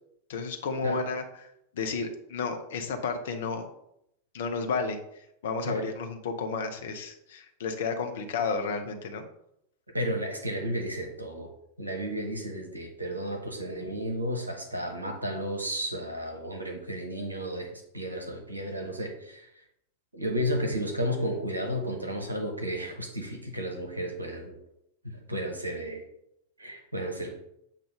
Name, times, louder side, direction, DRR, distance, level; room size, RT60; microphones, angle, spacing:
voice 1, 0.3-3.7 4.3-9.2, left 4 dB, 60° left, 6 dB, 0.8 m, -32 dB
voice 2, 9.9-11.5 11.8-19.5 20.1-24.6 25.0-26.0 26.6-27.4, equal, 80° right, 3 dB, 1.0 m, -33 dB
7.4 x 2.6 x 5.0 m, 0.78 s
figure-of-eight pair, 90°, 0 cm